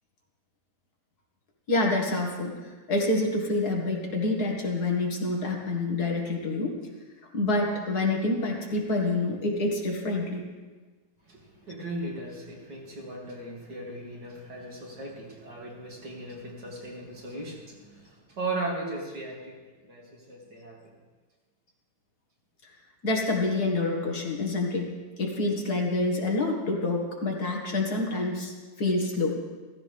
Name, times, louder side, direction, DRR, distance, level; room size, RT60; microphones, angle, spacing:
voice 1, 1.7-2.5 2.9-6.8 7.3-10.4 23.0-24.9 25.2-28.5 28.8-29.3, left 2 dB, 65° left, 0 dB, 2.3 m, -27 dB
voice 2, 11.3-19.6 19.8-20.9, right 2 dB, 90° right, -3 dB, 3.3 m, -37 dB
15.0 x 15.0 x 3.5 m, 1.3 s
omnidirectional pair, 1.8 m